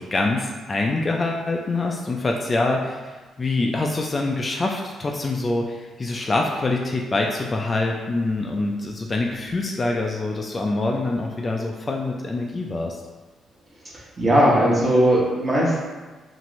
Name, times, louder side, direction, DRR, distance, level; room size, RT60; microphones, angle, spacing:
voice 1, 0.0-13.0, left 2 dB, 30° left, 1 dB, 0.3 m, -25 dB
voice 2, 14.2-15.8, equal, 30° right, -5 dB, 1.0 m, -18 dB
2.9 x 2.5 x 3.0 m, 1.3 s
cardioid pair, 90°, 0 cm